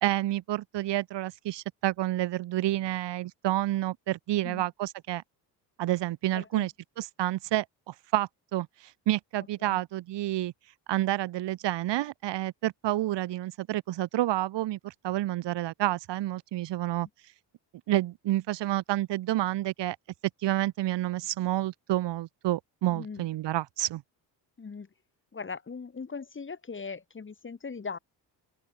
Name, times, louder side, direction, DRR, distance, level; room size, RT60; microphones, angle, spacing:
voice 1, 0.0-5.2 5.8-8.7 9.1-10.5 10.9-17.1 17.9-20.0 20.4-24.0, right 15 dB, 75° right, 1.7 m, -29 dB
voice 2, 6.3-6.7 9.6-9.8 22.9-23.3 24.6-24.9 25.3-28.0, left 5 dB, 30° left, 1.9 m, -39 dB
open air
cardioid pair, 80°, 43 cm